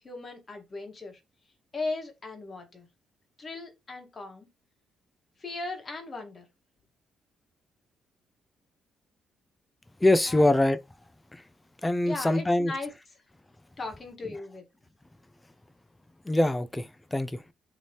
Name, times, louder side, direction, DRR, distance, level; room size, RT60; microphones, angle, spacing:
voice 1, 0.0-1.2 1.7-2.9 3.4-4.5 5.4-6.4 10.3-10.5 12.0-12.9 13.8-14.6, left 3 dB, 35° left, 1.1 m, -37 dB
voice 2, 10.0-10.8 11.3-11.4 11.8-12.7 16.3-17.4, left 1 dB, 15° left, 0.4 m, -24 dB
2.9 x 2.7 x 3.3 m
cardioid pair, 90°, 0 cm